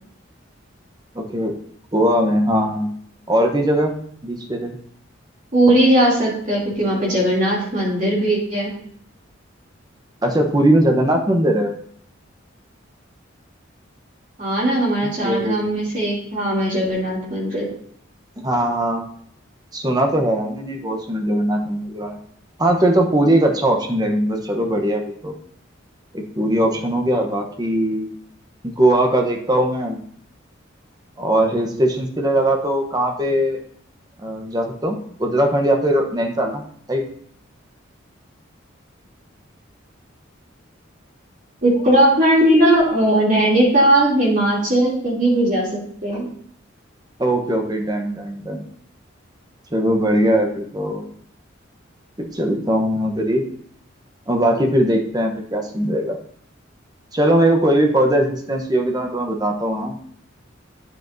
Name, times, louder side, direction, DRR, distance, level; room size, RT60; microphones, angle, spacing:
voice 1, 1.1-1.5 1.9-2.9 3.3-4.8 10.2-11.8 15.0-15.6 18.4-19.0 19.7-22.2 22.6-25.3 26.1-28.1 28.6-30.0 31.2-33.6 34.2-36.6 36.9-37.0 47.2-48.6 49.7-51.1 52.2-53.4 54.3-56.2 57.1-60.0, right 1 dB, 20° right, 3 dB, 0.9 m, -20 dB
voice 2, 5.5-8.7 14.4-17.7 41.6-46.3, right 1 dB, 40° right, -5 dB, 2.9 m, -18 dB
9.4 x 7.7 x 2.7 m, 0.63 s
head